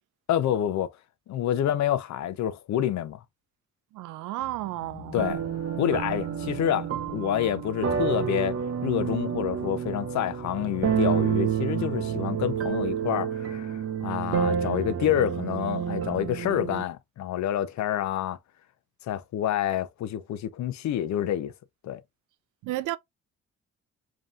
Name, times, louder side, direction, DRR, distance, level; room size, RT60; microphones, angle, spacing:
voice 1, 0.3-0.9 1.3-3.2 5.1-5.4 5.8-8.6 8.8-18.4 19.1-21.5 21.8-22.0, left 11 dB, 65° left, 0.6 m, -28 dB
voice 2, 3.9-5.4 22.6-23.0, right 16 dB, 85° right, 0.5 m, -33 dB
sound 1, 4.4-13.0, left 7 dB, 80° left, 1.2 m, -47 dB
sound 2, 5.2-16.8, right 8 dB, 50° right, 0.8 m, -29 dB
5.3 x 2.9 x 2.4 m
cardioid pair, 90°, 30 cm